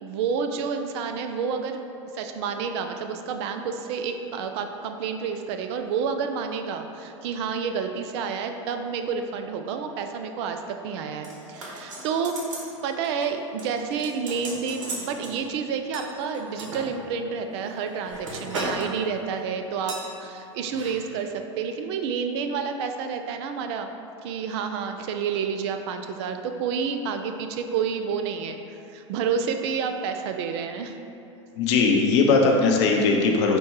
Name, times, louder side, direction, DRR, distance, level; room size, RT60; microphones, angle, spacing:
voice 1, 0.0-1.8 2.1-12.4 12.8-23.9 24.2-31.0, right 6 dB, 55° right, 6 dB, 0.4 m, -29 dB
sound 1, 11.2-12.7 13.0-13.3 13.6-15.3 15.9-16.9 17.5-18.9 19.1-19.4 19.9-20.1 20.6-20.9 21.2-21.3, right 2 dB, 80° right, 1.0 m, -36 dB
voice 2, 31.6-33.6, left 4 dB, 60° left, 2 dB, 0.6 m, -19 dB
4.3 x 2.2 x 4.6 m, 2.7 s
hypercardioid pair, 100°, 16 cm